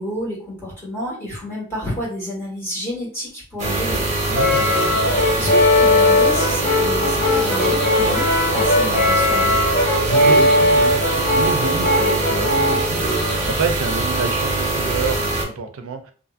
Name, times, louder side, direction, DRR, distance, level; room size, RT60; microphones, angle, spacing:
voice 1, 0.0-4.0 4.5-4.6 5.3-9.6, equal, 15° left, 1.5 m, -30 dB
sound 1, 3.6-15.4, right 2 dB, 35° right, 1.1 m, -23 dB
Brass instrument, 4.3-12.9, left 1 dB, 35° left, 0.9 m, -18 dB
voice 2, 4.3-4.8 10.0-16.1, right 4 dB, 85° right, 0.4 m, -28 dB
2.6 x 2.5 x 2.4 m
head